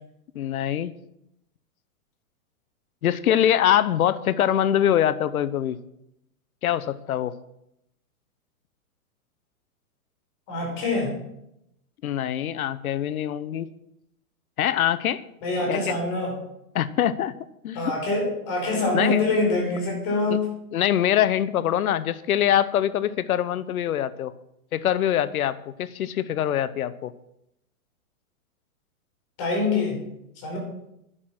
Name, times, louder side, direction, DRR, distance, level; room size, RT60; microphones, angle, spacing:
voice 1, 0.3-0.9 3.0-5.8 6.6-7.3 12.0-13.7 14.6-15.2 15.7-15.9 16.7-17.3 17.6-18.0 18.9-19.2 20.3-20.4 20.7-24.3 24.7-27.1, left 10 dB, 75° left, 16 dB, 1.0 m, -23 dB
voice 2, 10.5-11.2 15.4-16.3 17.8-20.5 29.4-30.0 30.4-30.6, left 3 dB, 30° left, 1 dB, 5.3 m, -25 dB
11.0 x 10.0 x 6.0 m, 0.82 s
hypercardioid pair, 160°, 43 cm